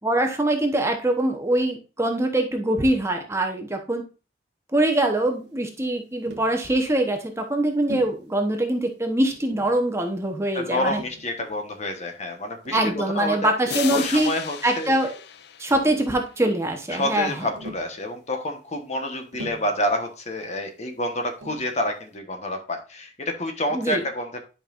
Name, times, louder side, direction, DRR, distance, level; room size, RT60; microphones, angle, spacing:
voice 1, 0.0-4.0 4.7-11.0 12.7-14.3 14.6-15.2 15.6-17.5 23.7-24.0, right 1 dB, 15° right, 4 dB, 0.9 m, -23 dB
Tap, 6.2-6.6 7.9-8.2 9.3-9.8 10.9-11.6 12.6-13.0 13.7-14.2 15.4-15.5 15.7-16.3 17.6-18.0 19.3-19.8 21.4-21.7, equal, 70° right, 1.1 m, -41 dB
voice 2, 10.5-13.5 13.9-15.0 16.9-24.4, left 1 dB, 40° left, 5 dB, 1.2 m, -28 dB
sound 1, 13.7-16.4, left 9 dB, 60° left, 0.5 m, -35 dB
10.5 x 5.3 x 2.5 m, 0.34 s
head